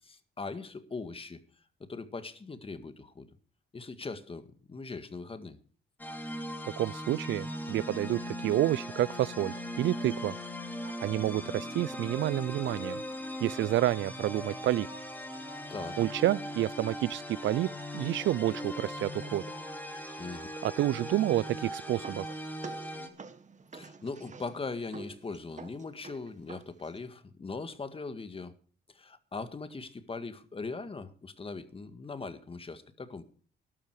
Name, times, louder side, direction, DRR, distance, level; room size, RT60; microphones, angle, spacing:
voice 1, 0.0-1.4 1.8-3.3 3.7-5.6 15.7-16.0 20.2-20.5 23.7-28.5 28.9-33.2, left 4 dB, 30° left, 1.9 m, -40 dB
sound 1, 6.0-23.1, left 1 dB, 10° left, 2.7 m, -39 dB
voice 2, 6.6-10.3 11.0-13.0 13.4-14.9 16.0-19.4 20.6-22.3, right 14 dB, 70° right, 0.5 m, -29 dB
sound 2, 21.3-27.1, right 4 dB, 40° right, 1.8 m, -49 dB
12.5 x 12.0 x 4.8 m
cardioid pair, 90°, 20 cm